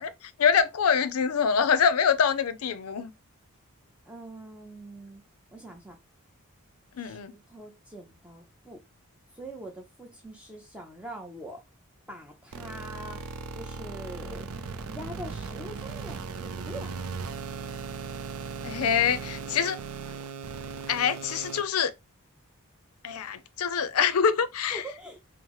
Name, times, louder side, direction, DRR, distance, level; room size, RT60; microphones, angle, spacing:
voice 1, 0.0-3.1 7.0-7.3 18.6-19.8 20.9-21.9 23.0-24.8, left 7 dB, 80° left, 0.5 m, -25 dB
voice 2, 4.1-5.2 5.5-6.0 7.0-8.8 9.3-11.6 12.1-13.2 13.5-14.5 14.9-17.0 24.7-25.2, right 1 dB, 5° right, 0.6 m, -43 dB
sound 1, 12.5-21.6, right 4 dB, 70° right, 0.5 m, -38 dB
5.5 x 2.0 x 3.0 m
head